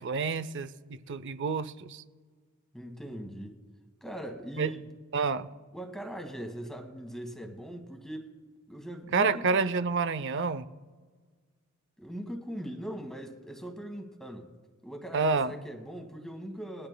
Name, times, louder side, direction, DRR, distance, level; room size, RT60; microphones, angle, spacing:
voice 1, 0.0-2.0 4.6-4.7 5.1-5.5 9.1-10.7 15.1-15.5, right 4 dB, 55° right, 0.5 m, -28 dB
voice 2, 2.7-3.6 4.0-4.8 5.7-8.3 8.7-9.6 12.0-14.5 14.8-16.9, equal, ahead, 1.5 m, -40 dB
21.0 x 12.5 x 2.2 m
head